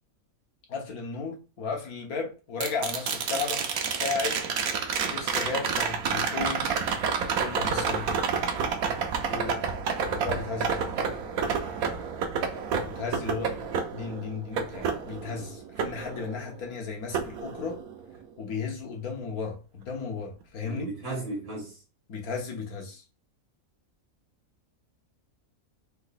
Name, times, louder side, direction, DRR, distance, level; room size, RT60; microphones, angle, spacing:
voice 1, 0.7-3.6 4.0-4.4 5.1-6.7 7.4-8.1 10.1-11.0 12.8-13.5 13.9-17.8 18.4-20.9 22.1-23.0, left 5 dB, 85° left, 1.7 m, -34 dB
sound 1, 2.6-16.7 17.1-18.2 20.4-20.5, right 6 dB, 90° right, 1.2 m, -30 dB
voice 2, 9.3-9.7 20.6-21.8, right 2 dB, 60° right, 1.8 m, -35 dB
4.3 x 2.7 x 4.0 m
omnidirectional pair, 1.5 m